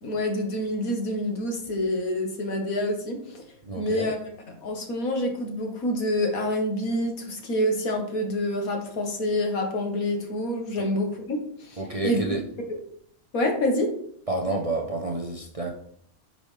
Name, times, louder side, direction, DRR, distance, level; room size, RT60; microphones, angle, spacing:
voice 1, 0.0-3.4 3.8-4.2 4.5-12.4 13.3-13.9, left 1 dB, 70° left, 3 dB, 1.9 m, -27 dB
voice 2, 3.6-4.1 11.8-12.4 14.3-15.7, right 2 dB, 30° right, 1 dB, 0.7 m, -29 dB
9.1 x 5.4 x 3.3 m, 0.64 s
omnidirectional pair, 1.6 m